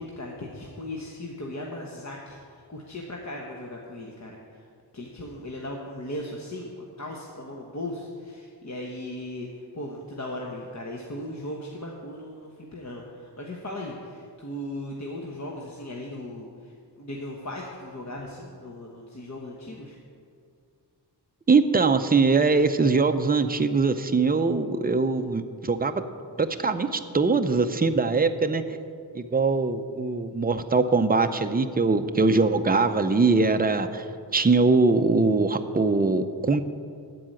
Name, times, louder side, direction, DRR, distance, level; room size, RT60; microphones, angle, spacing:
voice 1, 0.0-2.4 2.7-4.7 4.9-9.5 9.7-20.0, left 1 dB, 40° left, -1 dB, 1.2 m, -37 dB
voice 2, 21.5-26.0 26.4-28.6 29.1-34.0 34.3-36.6, right 4 dB, 20° right, 8 dB, 0.6 m, -22 dB
14.0 x 4.8 x 9.0 m, 2.2 s
wide cardioid pair, 115°, 42 cm